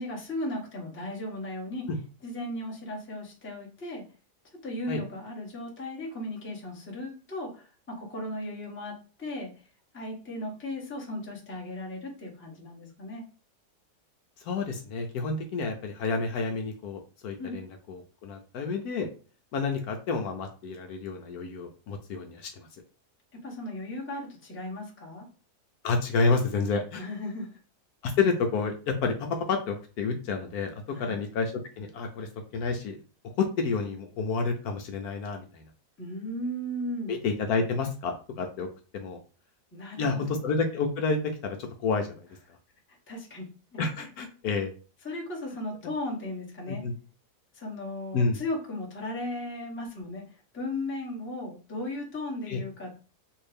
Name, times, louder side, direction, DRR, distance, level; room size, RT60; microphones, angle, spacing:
voice 1, 0.0-1.9 2.2-4.0 4.6-9.5 9.9-13.2 17.4-17.6 23.4-25.3 27.0-27.5 30.9-31.2 36.0-37.1 39.7-40.4 42.9-44.1 45.0-46.8 47.5-53.1, left 1 dB, 10° left, -2 dB, 0.8 m, -36 dB
voice 2, 14.4-19.1 19.5-22.7 25.8-27.0 28.0-33.0 33.2-35.6 37.1-38.7 38.9-39.2 40.0-42.3 43.8-44.7 46.7-46.9 48.1-48.4 52.5-52.6, left 4 dB, 70° left, 4 dB, 1.1 m, -29 dB
3.5 x 2.7 x 3.3 m, 0.37 s
omnidirectional pair, 1.7 m